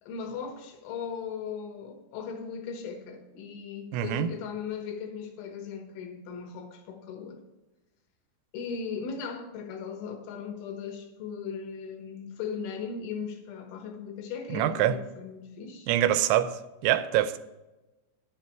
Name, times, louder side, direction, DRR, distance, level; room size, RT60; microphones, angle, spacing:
voice 1, 0.0-7.4 8.5-15.9, left 6 dB, 85° left, 3.8 m, -38 dB
voice 2, 3.9-4.3 14.5-15.0 15.9-16.5 16.8-17.4, right 12 dB, 85° right, 2.9 m, -24 dB
11.0 x 8.3 x 4.5 m
omnidirectional pair, 5.3 m